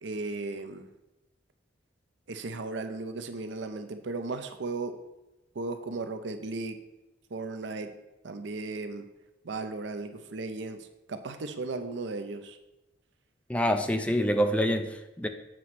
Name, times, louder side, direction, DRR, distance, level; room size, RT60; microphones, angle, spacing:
voice 1, 0.0-0.9 2.3-5.0 5.5-6.8 7.3-7.9 8.2-9.1 9.4-12.6, right 3 dB, 65° right, 8 dB, 0.6 m, -36 dB
voice 2, 13.5-15.3, equal, 5° left, 6 dB, 0.4 m, -26 dB
7.5 x 3.1 x 5.8 m, 0.97 s
head